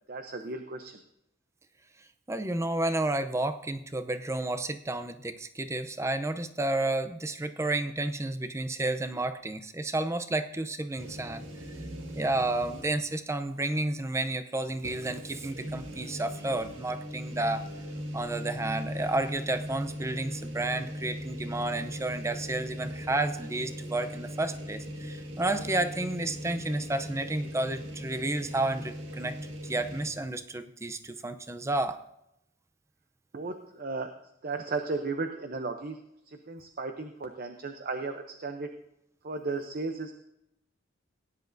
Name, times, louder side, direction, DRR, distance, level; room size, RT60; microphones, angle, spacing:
voice 1, 0.1-1.0 33.3-34.1 34.4-36.0 36.3-38.7 39.2-40.1, right 3 dB, 45° right, 6 dB, 0.7 m, -35 dB
voice 2, 2.3-11.4 12.1-17.7 18.1-32.0, right 2 dB, 15° right, 9 dB, 0.6 m, -31 dB
sound 1, 11.0-13.1 13.5-13.6 14.8-30.1, equal, 75° right, 1.8 m, -39 dB
17.5 x 10.0 x 2.7 m, 0.81 s
head